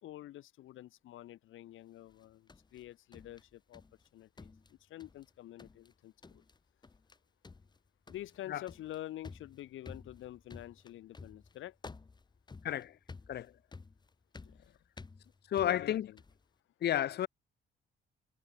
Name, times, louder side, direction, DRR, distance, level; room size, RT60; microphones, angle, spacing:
voice 1, 0.0-3.8 4.1-6.4 8.1-11.8 14.4-14.8 15.6-16.2, left 14 dB, 80° left, 2.3 m, -48 dB
sound 1, 2.1-4.1 4.4-5.3 5.6-5.9 6.2-6.6 6.8-7.2 7.4-16.4, left 4 dB, 20° left, 1.0 m, -53 dB
voice 2, 12.6-13.0 13.3-13.5 15.5-16.1 16.8-17.3, left 11 dB, 55° left, 0.7 m, -31 dB
cardioid pair, 90°, 20 cm